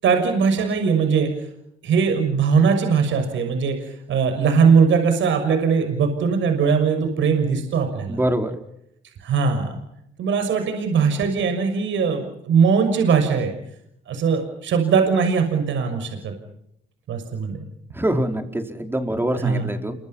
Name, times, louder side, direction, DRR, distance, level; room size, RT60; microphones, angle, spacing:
voice 1, 0.0-1.3 1.8-3.8 4.1-8.2 9.2-9.8 10.2-13.5 14.1-16.3 17.1-17.6 19.4-19.7, right 5 dB, 75° right, 6 dB, 6.4 m, -20 dB
voice 2, 8.1-8.5 17.9-19.9, right 1 dB, 10° right, 5 dB, 4.8 m, -24 dB
29.5 x 25.0 x 5.7 m, 0.76 s
cardioid pair, 90°, 20 cm